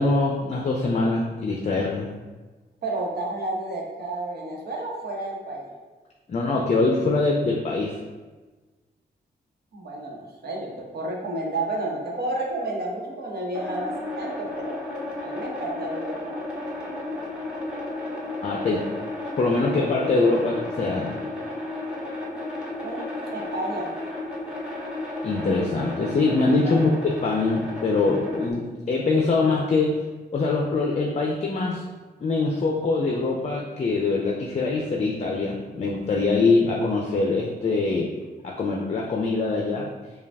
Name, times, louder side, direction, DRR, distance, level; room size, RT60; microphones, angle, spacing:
voice 1, 0.0-2.1 6.3-7.9 18.4-18.9 19.4-21.1 25.2-30.0 30.3-31.8 32.2-38.1 38.4-39.9, left 3 dB, 40° left, -1 dB, 0.5 m, -23 dB
voice 2, 2.8-5.7 9.7-14.8 15.2-16.3 22.8-23.9 26.6-26.7, right 2 dB, 70° right, -2 dB, 1.0 m, -31 dB
sound 1, 13.5-28.5, left 2 dB, 5° right, 1.0 m, -33 dB
5.0 x 2.3 x 3.4 m, 1.3 s
cardioid pair, 100°, 17 cm